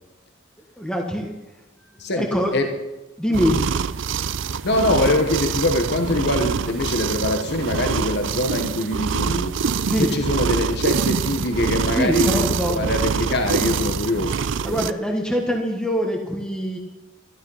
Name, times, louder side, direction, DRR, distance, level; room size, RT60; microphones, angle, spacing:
voice 1, 0.8-1.4 1.9-2.5 3.2-3.6 9.9-10.1 12.0-12.8 14.6-16.8, equal, 5° left, 1 dB, 1.3 m, -24 dB
sound 1, 3.3-14.9, right 5 dB, 65° right, 0.5 m, -25 dB
voice 2, 4.6-14.4 14.7-14.8, left 1 dB, 55° left, 5 dB, 1.1 m, -23 dB
13.0 x 12.0 x 5.5 m, 1.1 s
head